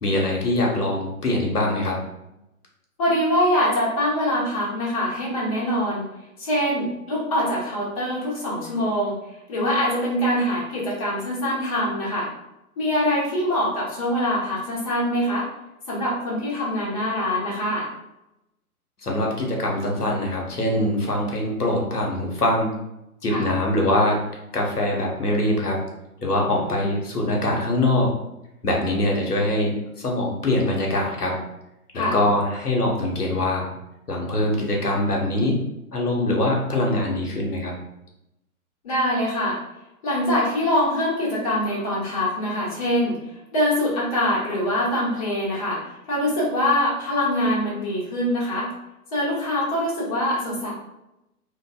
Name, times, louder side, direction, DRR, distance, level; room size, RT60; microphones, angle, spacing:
voice 1, 0.0-2.0 19.0-22.7 23.2-24.2 24.5-25.8 26.2-28.1 28.6-31.4 31.9-33.7 34.1-35.6 35.9-37.7, left 1 dB, 85° left, -1 dB, 0.8 m, -23 dB
voice 2, 3.0-6.1 6.4-9.2 9.5-12.3 12.8-15.5 15.9-17.9 23.3-23.5 26.5-26.9 31.9-32.2 38.8-39.6 40.0-43.2 43.5-45.8 46.1-48.7 49.1-50.7, left 1 dB, 25° left, -5 dB, 0.6 m, -24 dB
2.6 x 2.5 x 2.3 m, 0.89 s
figure-of-eight pair, 125°, 45 cm